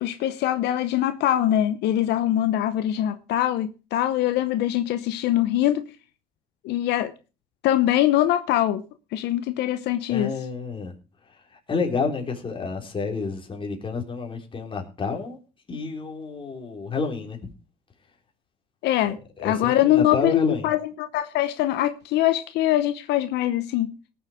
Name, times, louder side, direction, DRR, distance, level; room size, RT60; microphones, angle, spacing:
voice 1, 0.0-5.9 6.6-7.1 7.6-8.8 9.1-10.3 18.8-23.9, left 13 dB, 80° left, 0.9 m, -23 dB
voice 2, 10.1-10.9 11.3-15.4 15.7-17.4 19.1-20.7, left 4 dB, 30° left, 3.8 m, -29 dB
18.5 x 7.2 x 5.0 m
cardioid pair, 110°, 17 cm